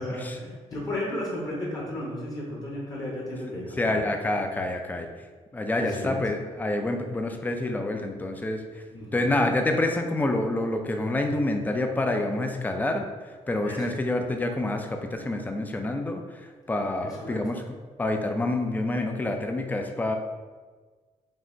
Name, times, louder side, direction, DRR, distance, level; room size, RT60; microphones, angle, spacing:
voice 1, 0.0-4.0 5.7-6.2 8.9-9.4 13.6-13.9 17.0-17.4, left 1 dB, 30° left, -5 dB, 1.0 m, -34 dB
voice 2, 3.8-5.1 5.5-8.6 9.1-13.1 13.5-17.6 18.0-20.2, left 2 dB, 15° left, 5 dB, 0.4 m, -27 dB
5.3 x 2.9 x 2.7 m, 1.4 s
cardioid pair, 140°, 12 cm